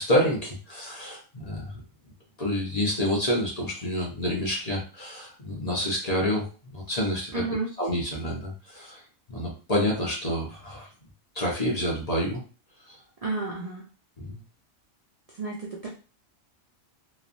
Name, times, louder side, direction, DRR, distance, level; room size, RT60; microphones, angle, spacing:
voice 1, 0.0-1.8 2.4-7.3 7.8-9.0 9.3-10.9 11.3-12.4 12.8-13.0 14.2-14.4, equal, 35° left, -3 dB, 0.8 m, -28 dB
voice 2, 7.3-7.7 13.2-13.9 15.3-15.9, right 3 dB, 65° right, -2 dB, 0.3 m, -31 dB
3.1 x 2.3 x 2.5 m, 0.36 s
omnidirectional pair, 1.4 m